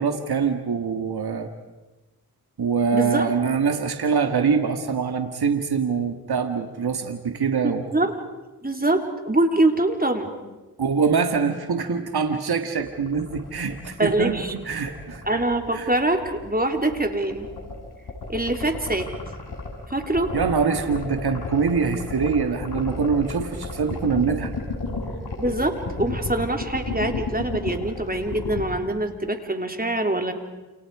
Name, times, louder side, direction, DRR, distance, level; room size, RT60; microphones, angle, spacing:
voice 1, 0.0-1.5 2.6-7.8 10.8-15.3 15.7-15.9 20.3-24.5, right 5 dB, 80° right, 6 dB, 2.0 m, -24 dB
voice 2, 2.9-3.3 7.6-8.1 8.6-10.3 13.9-14.5 15.3-17.5 18.3-19.1 19.9-20.3 25.4-30.3, right 2 dB, 25° right, 4 dB, 3.7 m, -24 dB
sound 1, 12.8-28.6, left 3 dB, 80° left, 5.5 m, -32 dB
29.5 x 29.0 x 5.0 m, 1.1 s
cardioid pair, 40°, 38 cm